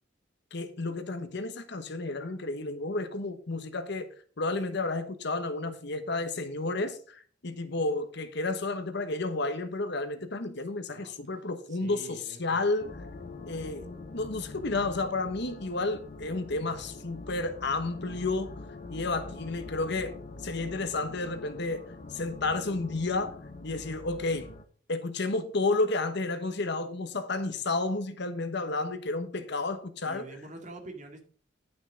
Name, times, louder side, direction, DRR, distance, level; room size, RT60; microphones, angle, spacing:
voice 1, 0.5-4.1 4.4-12.9 13.5-18.5 18.9-20.2 20.4-24.5 24.9-30.2, left 3 dB, 60° left, 1.1 m, -31 dB
voice 2, 11.7-12.6 30.0-31.2, right 2 dB, 40° right, 2.1 m, -45 dB
sound 1, 12.8-24.6, left 3 dB, 40° left, 0.9 m, -44 dB
11.0 x 6.0 x 5.0 m
head